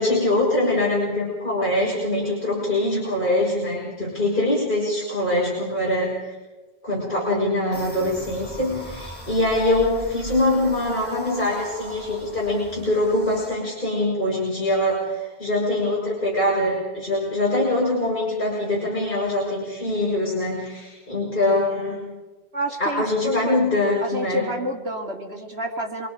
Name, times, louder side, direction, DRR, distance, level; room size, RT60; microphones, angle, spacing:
voice 1, 0.0-6.3 6.8-22.0 22.8-24.5, left 1 dB, 55° left, -5 dB, 6.2 m, -23 dB
sound 1, 7.7-13.5, equal, 10° left, 4.4 m, -39 dB
voice 2, 22.5-23.6 24.0-26.1, equal, 80° right, 0 dB, 3.2 m, -29 dB
27.0 x 23.5 x 5.0 m, 1.2 s
omnidirectional pair, 1.1 m